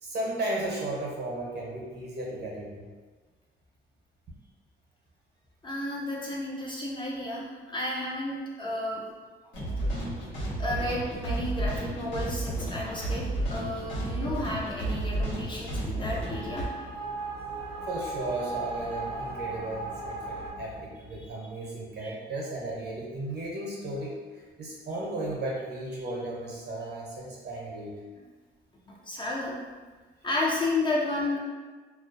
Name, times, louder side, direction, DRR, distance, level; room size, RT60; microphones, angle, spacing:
voice 1, 0.0-2.9 17.8-28.0, right 2 dB, 55° right, -3 dB, 0.8 m, -35 dB
voice 2, 5.6-9.0 10.6-13.2 13.5-16.6 21.2-21.3 22.0-22.1 28.9-29.5 30.2-31.4, left 2 dB, 25° left, -4 dB, 0.5 m, -32 dB
sound 1, 9.5-16.6, right 1 dB, 80° left, 1.1 m, -32 dB
sound 2, 11.9-21.3, left 1 dB, 25° right, 0.5 m, -49 dB
sound 3, 16.2-20.5, right 3 dB, 60° left, 0.7 m, -37 dB
2.4 x 2.1 x 2.5 m, 1.4 s
cardioid pair, 90°, 20 cm